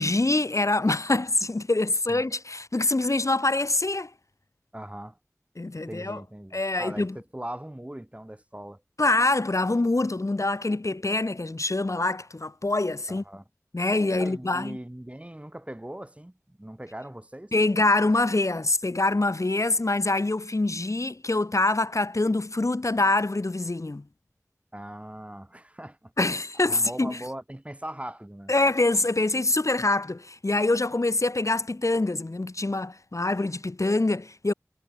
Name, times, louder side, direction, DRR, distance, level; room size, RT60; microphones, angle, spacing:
voice 1, 0.0-4.1 5.6-6.2 6.5-7.1 9.0-13.2 13.7-14.8 17.5-24.0 26.2-27.2 28.5-34.5, left 2 dB, 65° left, 2.7 m, -25 dB
voice 2, 4.7-5.2 5.9-8.8 13.1-13.4 14.2-17.5 24.7-28.5, right 1 dB, 20° right, 6.9 m, -40 dB
wide cardioid pair, 50°, 6 cm